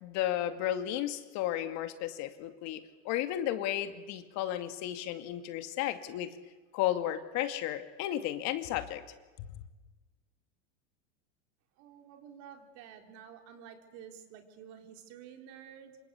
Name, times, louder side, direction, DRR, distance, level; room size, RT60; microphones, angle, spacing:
voice 1, 0.0-6.4 6.7-9.0 9.4-9.6, left 12 dB, 50° left, 9 dB, 2.4 m, -33 dB
voice 2, 11.8-16.0, right 8 dB, 50° right, 5 dB, 4.1 m, -51 dB
27.5 x 25.5 x 8.3 m, 1.2 s
hypercardioid pair, 110°, 35 cm